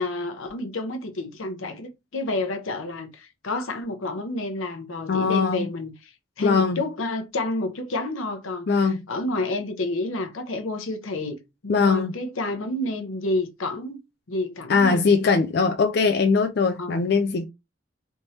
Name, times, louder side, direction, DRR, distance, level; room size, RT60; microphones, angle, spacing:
voice 1, 0.0-6.1 6.4-14.0 14.3-15.0 16.8-17.0, left 2 dB, 85° left, 0.8 m, -30 dB
voice 2, 5.1-5.6 6.4-6.8 8.7-9.0 11.7-12.1 14.7-17.5, left 4 dB, 50° left, 0.4 m, -21 dB
3.4 x 3.0 x 2.7 m
head